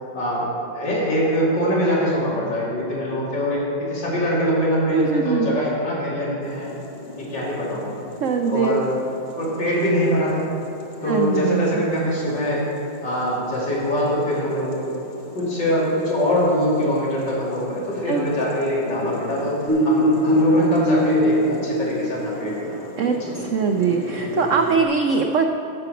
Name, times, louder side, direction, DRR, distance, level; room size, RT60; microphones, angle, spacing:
voice 1, 0.1-6.7 7.2-7.9 8.5-8.8 9.4-10.5 11.0-12.6 13.0-14.9 15.4-22.8 23.2-23.4, equal, 75° left, -7 dB, 3.4 m, -23 dB
voice 2, 4.9-5.6 8.2-8.8 11.1-11.8 18.1-18.2 23.0-25.5, right 5 dB, 85° right, 4 dB, 0.6 m, -22 dB
sound 1, 6.4-24.7, left 3 dB, 40° left, 0.7 m, -38 dB
sound 2, 19.7-22.6 23.6-24.8, equal, 10° left, 1.5 m, -22 dB
10.5 x 7.0 x 5.9 m, 3.0 s
omnidirectional pair, 2.0 m